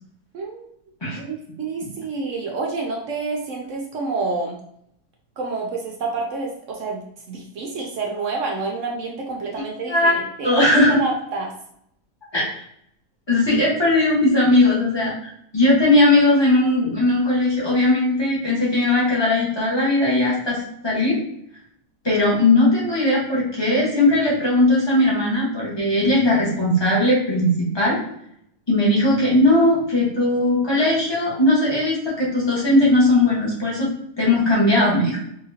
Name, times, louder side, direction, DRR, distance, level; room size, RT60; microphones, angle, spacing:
voice 1, 0.3-0.7 1.1-4.6 5.4-10.5 10.9-11.5, right 3 dB, 65° right, 0 dB, 0.7 m, -28 dB
voice 2, 10.4-11.0 12.3-12.6 13.3-20.6 20.8-21.2 22.0-28.0 28.7-33.9 34.2-35.2, left 2 dB, 20° left, -6 dB, 0.9 m, -18 dB
3.9 x 2.8 x 2.7 m, 0.71 s
omnidirectional pair, 1.8 m